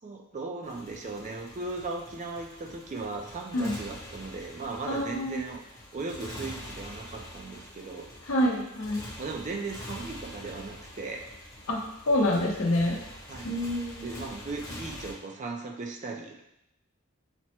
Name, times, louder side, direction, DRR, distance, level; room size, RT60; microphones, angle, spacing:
voice 1, 0.0-5.6 5.9-8.1 9.2-11.3 13.3-13.6 14.0-16.4, right 3 dB, 35° right, 3 dB, 0.4 m, -37 dB
Motorcycle, 0.6-15.1, left 1 dB, 15° left, 0.8 m, -45 dB
voice 2, 4.9-5.4 8.3-9.0 11.7-11.8 12.1-13.0 13.4-14.1, left 1 dB, 90° left, 0 dB, 0.7 m, -27 dB
5.8 x 2.1 x 2.9 m, 0.85 s
head